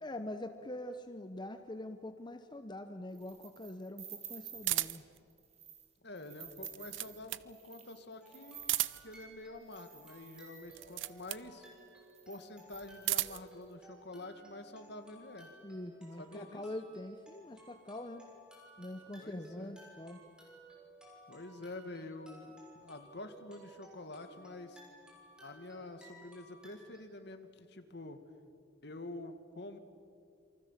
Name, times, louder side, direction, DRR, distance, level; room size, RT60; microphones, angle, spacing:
voice 1, 0.0-5.0 15.6-18.3 18.8-20.2, left 1 dB, 25° left, 8 dB, 0.9 m, -44 dB
sound 1, 3.1-4.8 5.3-5.9 6.2-11.2 11.8-11.9 12.1-13.6, right 8 dB, 35° right, 3.0 m, -52 dB
sound 2, 4.6-5.2 6.5-7.5 8.6-9.2 10.7-11.5 12.7-13.5, right 16 dB, 85° right, 0.7 m, -35 dB
voice 2, 6.0-8.8 9.0-11.7 12.3-15.5 16.2-16.6 19.2-19.8 21.3-24.8 25.4-28.2 28.8-29.8, left 2 dB, 60° left, 8 dB, 2.1 m, -47 dB
sound 3, 8.2-27.0, right 1 dB, 5° right, 6.7 m, -57 dB
28.5 x 24.0 x 7.5 m, 2.3 s
head